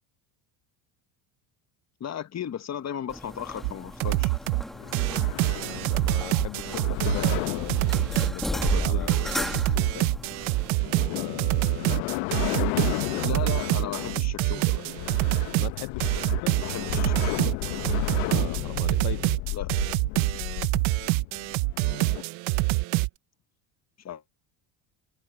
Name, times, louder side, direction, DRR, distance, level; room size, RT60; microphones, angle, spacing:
voice 1, 2.0-4.4 8.7-9.3 13.1-14.9 16.6-17.6 19.5-19.7 24.0-24.2, left 9 dB, 35° left, 1.4 m, -36 dB
sound 1, 3.1-10.8, equal, ahead, 1.5 m, -35 dB
sound 2, 3.5-22.2, left 23 dB, 85° left, 1.0 m, -34 dB
sound 3, 3.6-3.7 4.0-4.6 4.9-23.1, right 23 dB, 70° right, 0.9 m, -26 dB
voice 2, 5.9-10.1 11.0-12.2 12.5-13.4 15.6-16.6 18.2-19.3, left 17 dB, 55° left, 0.8 m, -39 dB
cardioid pair, 115°, 49 cm